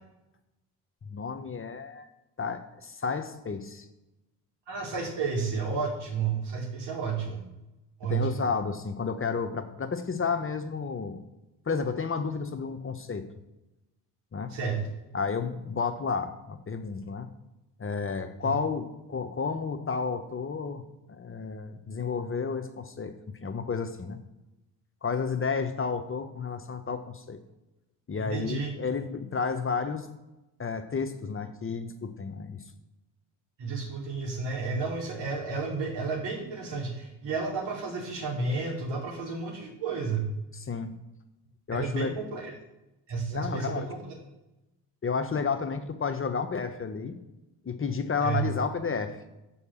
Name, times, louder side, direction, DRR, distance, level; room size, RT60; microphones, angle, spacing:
voice 1, 1.1-2.1 2.4-3.9 8.1-11.2 11.7-13.2 14.3-14.5 15.1-17.3 17.8-20.8 21.1-24.2 25.0-27.4 28.1-30.1 30.6-32.6 40.5-40.9 41.7-42.1 43.3-43.9 45.0-47.1 47.6-49.2, left 5 dB, 30° left, 8 dB, 0.9 m, -31 dB
voice 2, 4.7-7.4 8.0-8.4 14.5-14.9 18.4-18.5 28.2-28.7 33.6-40.3 41.7-42.5 43.1-44.0 48.2-48.5, right 4 dB, 65° right, -1 dB, 2.8 m, -31 dB
7.0 x 4.7 x 7.0 m, 0.97 s
hypercardioid pair, 50°, 46 cm